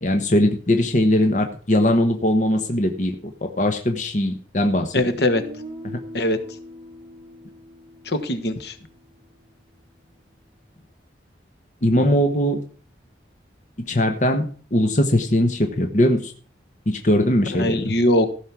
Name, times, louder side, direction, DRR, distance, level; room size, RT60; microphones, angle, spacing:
voice 1, 0.0-3.1 3.4-4.9 5.8-6.0 11.8-12.6 13.9-16.3 16.9-17.9, left 1 dB, 45° left, 5 dB, 1.1 m, -20 dB
voice 2, 4.9-5.4 6.1-6.4 8.0-8.7 17.5-18.3, left 1 dB, 60° left, 10 dB, 1.4 m, -21 dB
Guitar, 5.3-9.3, left 1 dB, 25° right, 3.0 m, -41 dB
15.5 x 6.4 x 6.1 m, 0.42 s
head